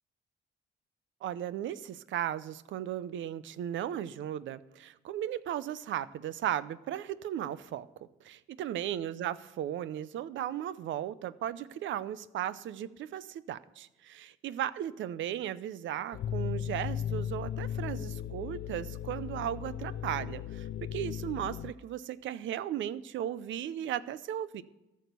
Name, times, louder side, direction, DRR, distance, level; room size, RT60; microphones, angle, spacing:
voice 1, 1.2-7.9 8.2-24.6, right 11 dB, 75° right, 16 dB, 0.6 m, -36 dB
sound 1, 16.1-21.7, left 10 dB, 55° left, 0.4 m, -36 dB
14.0 x 6.5 x 6.8 m, 0.97 s
cardioid pair, 90°, 20 cm